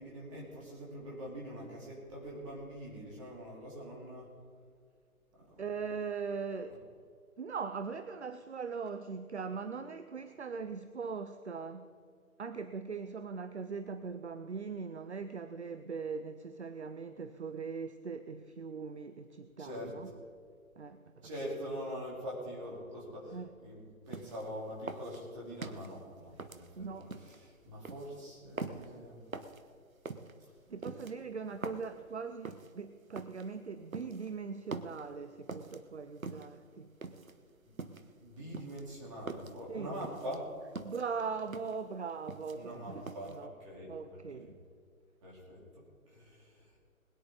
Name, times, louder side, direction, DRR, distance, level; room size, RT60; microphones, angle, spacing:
voice 1, 0.0-4.3 5.4-5.6 19.6-20.2 21.2-29.2 37.8-37.9 38.2-40.5 42.5-44.5 45.2-46.8, equal, 20° right, -4 dB, 3.8 m, -44 dB
voice 2, 5.6-6.8 7.4-11.9 12.4-20.1 20.8-21.3 23.3-23.5 26.7-27.1 30.7-36.9 39.7-40.0 40.8-43.5 43.9-44.5, right 5 dB, 50° right, 11 dB, 0.7 m, -40 dB
sound 1, 24.1-24.5 24.9-25.9 26.4-27.4 27.8-28.1 28.6-28.9 29.3-29.6 30.1-30.3 30.8-31.9 32.4-32.7 33.2-33.5 33.9-34.3 34.7-35.0 35.5-35.8 36.2-36.6 37.0-37.4 37.8-38.1 38.5-39.6 40.0-40.4 40.8-41.1 41.5-41.8 42.1-42.8 43.1-43.4, right 4 dB, 70° right, 1.2 m, -43 dB
21.5 x 10.5 x 4.0 m, 2.2 s
figure-of-eight pair, 150°, 43 cm